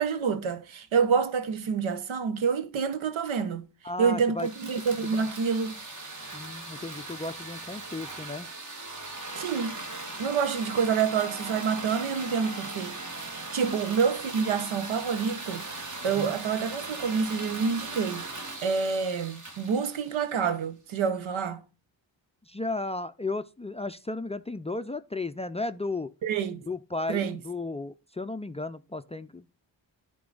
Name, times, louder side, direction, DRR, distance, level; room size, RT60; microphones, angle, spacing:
voice 1, 0.0-3.6 4.0-5.8 9.4-9.8 10.2-12.9 13.3-15.6 16.0-21.6 26.2-26.6 27.1-27.4, right 6 dB, 85° right, 0.9 m, -27 dB
voice 2, 3.8-4.5 5.0-5.2 6.3-8.5 13.6-13.8 16.0-16.3 22.5-26.1 26.7-29.4, left 2 dB, 15° left, 0.3 m, -34 dB
sound 1, 4.4-20.6, right 2 dB, 40° right, 1.6 m, -39 dB
10.5 x 3.9 x 3.8 m
cardioid pair, 50°, 46 cm